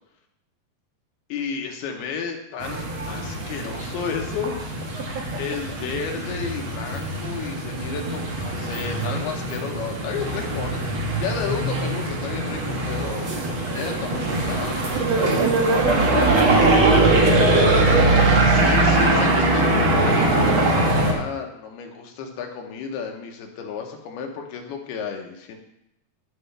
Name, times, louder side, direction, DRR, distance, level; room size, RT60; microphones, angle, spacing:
voice 1, 1.3-4.6 5.4-15.3 18.4-25.6, left 6 dB, 90° left, 3 dB, 3.0 m, -32 dB
sound 1, 2.6-21.1, right 2 dB, 70° right, 1.2 m, -21 dB
voice 2, 5.0-5.3 14.9-18.1, right 4 dB, 85° right, 2 dB, 1.7 m, -26 dB
13.5 x 5.4 x 3.3 m, 0.81 s
omnidirectional pair, 4.4 m